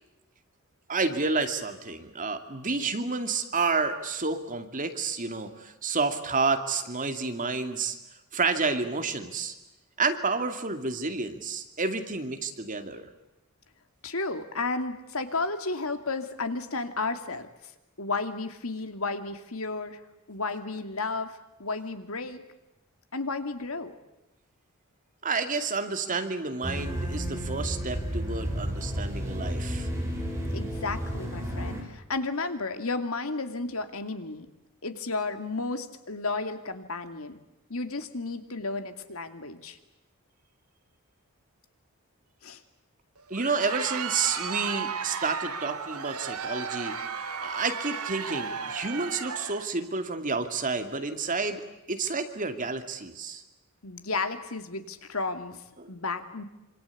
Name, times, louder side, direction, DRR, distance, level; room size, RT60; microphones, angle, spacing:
voice 1, 0.9-8.0 8.3-9.5 10.0-13.1 25.2-29.9 43.3-47.0 47.4-53.4 55.8-55.9, right 4 dB, 35° right, 7 dB, 2.5 m, -30 dB
voice 2, 14.0-17.5 18.0-20.0 20.3-22.4 23.1-23.9 30.5-34.5 34.8-37.4 37.7-39.8 42.4-42.6 53.8-55.6 55.9-56.4, left 3 dB, 70° left, 8 dB, 2.4 m, -33 dB
sound 1, 26.6-31.8, equal, 15° right, 7.0 m, -32 dB
Crowd, 43.2-49.7, right 6 dB, 80° right, 2.0 m, -34 dB
26.5 x 26.5 x 8.5 m, 0.94 s
head